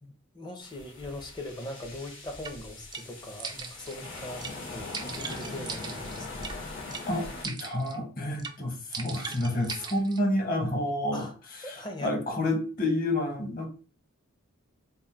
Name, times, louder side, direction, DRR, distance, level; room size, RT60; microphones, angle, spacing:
voice 1, 0.0-6.6 11.1-11.3 11.6-12.1, left 1 dB, 20° left, 0.6 m, -41 dB
sound 1, 0.6-7.5, left 2 dB, 70° left, 1.6 m, -41 dB
sound 2, 2.4-2.5 2.9-3.0 3.4-4.0 4.4-4.5 4.9-6.5 6.9-7.0 7.4-8.0 8.4-8.6 8.9-10.2, right 5 dB, 20° right, 0.3 m, -39 dB
voice 2, 7.1-11.3 11.6-13.7, left 1 dB, 40° left, 1.1 m, -29 dB
3.7 x 2.1 x 4.3 m
head